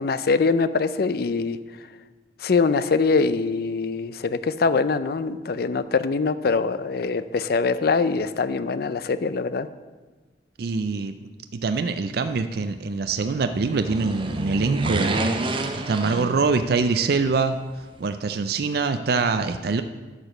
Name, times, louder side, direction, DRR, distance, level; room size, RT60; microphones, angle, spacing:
voice 1, 0.0-1.6 2.4-9.7, left 4 dB, 60° left, 14 dB, 0.4 m, -23 dB
voice 2, 10.6-17.6 18.0-19.8, right 4 dB, 60° right, 9 dB, 0.4 m, -24 dB
sound 1, 13.5-16.9 17.2-17.3, right 2 dB, 30° right, 0.8 m, -28 dB
11.5 x 4.9 x 6.5 m, 1.3 s
head